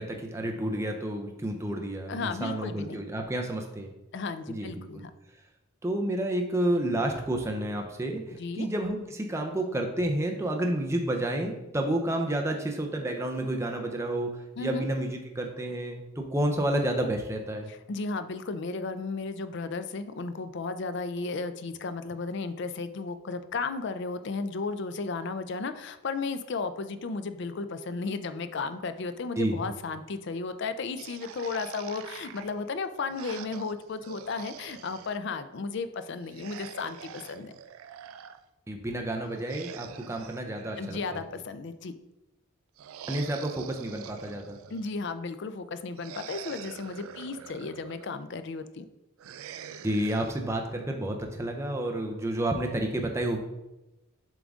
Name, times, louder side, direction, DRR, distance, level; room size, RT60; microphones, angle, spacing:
voice 1, 0.0-3.9 4.5-5.0 5.8-17.7 29.4-29.6 38.7-41.2 43.1-44.6 49.8-53.4, right 1 dB, 15° right, 2 dB, 0.5 m, -30 dB
voice 2, 2.1-3.0 4.1-5.1 8.4-8.7 14.6-14.9 17.7-37.5 40.8-41.9 44.7-48.9, left 4 dB, 55° left, 11 dB, 0.4 m, -34 dB
sound 1, 30.9-35.2 36.2-38.4 39.3-41.6 42.8-45.0 46.0-48.1 49.2-50.3, right 9 dB, 75° right, 0.3 m, -45 dB
7.2 x 3.7 x 3.5 m, 0.97 s
head